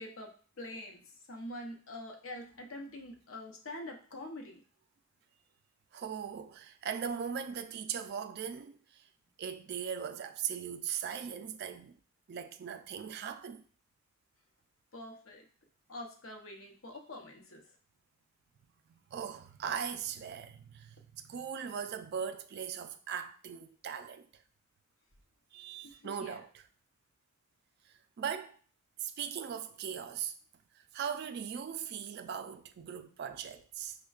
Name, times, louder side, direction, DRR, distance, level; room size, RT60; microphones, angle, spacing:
voice 1, 0.0-4.6 14.9-15.5 15.9-17.7 25.8-26.4, left 1 dB, 85° left, 0.7 m, -45 dB
voice 2, 5.9-9.0 9.4-12.0 12.3-13.6 19.1-24.4 25.5-26.5 27.9-28.6 29.0-30.3 30.8-34.0, right 7 dB, 55° right, 0.3 m, -39 dB
5.2 x 2.2 x 2.3 m
head